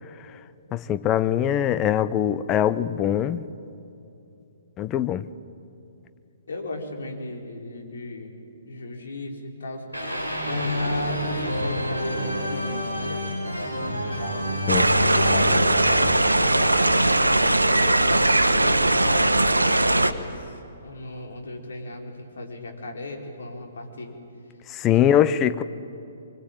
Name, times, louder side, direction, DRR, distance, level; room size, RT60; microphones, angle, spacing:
voice 1, 0.7-3.5 4.8-5.3 14.7-14.9 24.7-25.6, left 10 dB, 20° left, 14 dB, 0.8 m, -22 dB
voice 2, 6.5-8.3 8.6-13.2 13.7-13.8 14.2-14.5 15.0-17.2 18.0-20.5 20.8-24.2 24.8-25.3, left 2 dB, 60° left, 2 dB, 4.5 m, -36 dB
sound 1, 9.9-16.9, left 1 dB, 90° left, 6.5 m, -28 dB
sound 2, 14.7-20.1, right 2 dB, 80° right, 1.2 m, -20 dB
26.0 x 24.0 x 9.0 m, 2.7 s
figure-of-eight pair, 125°, 0 cm